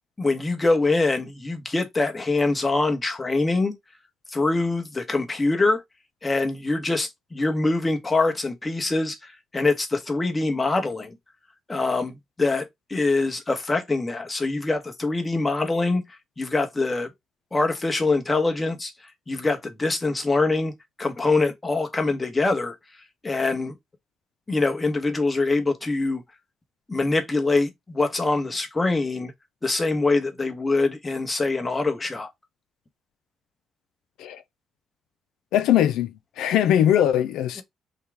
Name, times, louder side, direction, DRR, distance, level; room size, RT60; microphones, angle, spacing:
voice 1, 0.2-3.7 4.3-5.8 6.2-11.2 11.7-16.0 16.4-17.1 17.5-18.9 19.3-20.7 21.0-22.7 23.2-23.7 24.5-26.2 26.9-29.3 29.6-32.3, left 3 dB, 20° left, 1.2 m, -24 dB
voice 2, 35.5-36.1 36.4-37.6, left 11 dB, 85° left, 0.5 m, -20 dB
5.6 x 2.4 x 3.5 m
cardioid pair, 90°, 0 cm